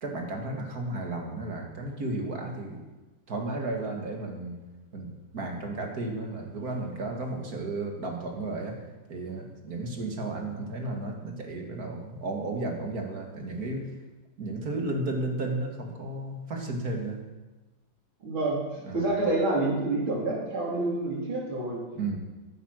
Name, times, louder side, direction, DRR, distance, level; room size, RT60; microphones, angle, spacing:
voice 1, 0.0-2.8 3.3-4.6 4.9-8.8 9.1-13.9 14.4-17.2 18.9-19.1 22.0-22.2, right 2 dB, 50° right, 2 dB, 2.3 m, -33 dB
voice 2, 18.2-18.6 18.9-21.8, right 2 dB, 80° right, -3 dB, 4.1 m, -28 dB
14.0 x 8.7 x 6.4 m, 1.1 s
omnidirectional pair, 2.2 m